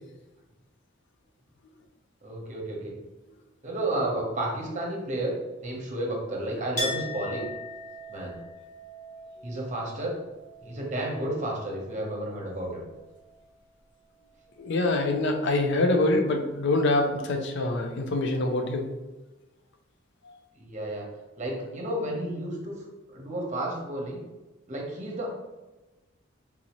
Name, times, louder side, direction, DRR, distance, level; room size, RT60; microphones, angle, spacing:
voice 1, 2.2-2.9 3.6-7.5 8.1-8.4 9.4-10.2 10.6-12.9 20.6-21.1 21.4-22.8 23.1-24.2 24.7-25.3, right 1 dB, 40° right, -2 dB, 0.9 m, -32 dB
Chink clink, 6.8-12.3 12.6-13.5, left 1 dB, 35° left, 1.1 m, -39 dB
voice 2, 14.6-18.8, left 2 dB, 60° left, 4 dB, 0.5 m, -25 dB
3.7 x 2.7 x 3.0 m, 1.1 s
head